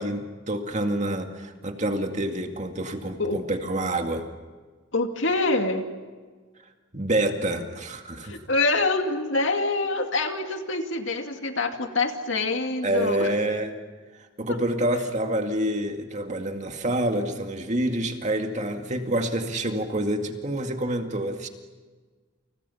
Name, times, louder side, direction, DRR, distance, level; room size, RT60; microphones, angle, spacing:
voice 1, 0.0-4.3 6.9-8.4 12.8-13.7 14.4-21.5, right 1 dB, 35° right, 4 dB, 2.2 m, -27 dB
voice 2, 4.9-5.9 8.2-13.3 14.5-14.6, left 3 dB, 65° left, 4 dB, 2.5 m, -25 dB
29.5 x 29.0 x 5.8 m, 1.4 s
head